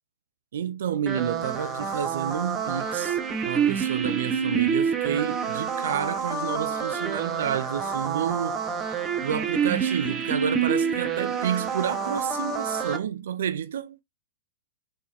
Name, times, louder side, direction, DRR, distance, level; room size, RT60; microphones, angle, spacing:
voice 1, 0.5-8.6 9.2-14.0, right 8 dB, 70° right, 0.4 m, -30 dB
sound 1, 1.1-13.0, right 6 dB, 25° right, 0.8 m, -27 dB
4.5 x 3.0 x 3.1 m
hypercardioid pair, 110°, 0 cm